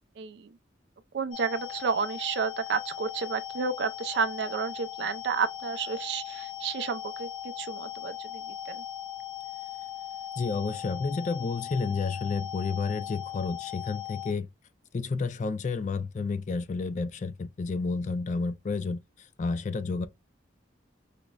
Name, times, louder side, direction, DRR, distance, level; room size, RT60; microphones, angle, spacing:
voice 1, 0.2-0.5 1.1-7.3 7.6-8.8, right 5 dB, 60° right, 0.3 m, -31 dB
sound 1, 1.3-14.3, left 11 dB, 70° left, 0.7 m, -39 dB
voice 2, 10.4-14.5 14.9-20.1, left 4 dB, 40° left, 0.3 m, -31 dB
5.0 x 2.0 x 2.2 m
head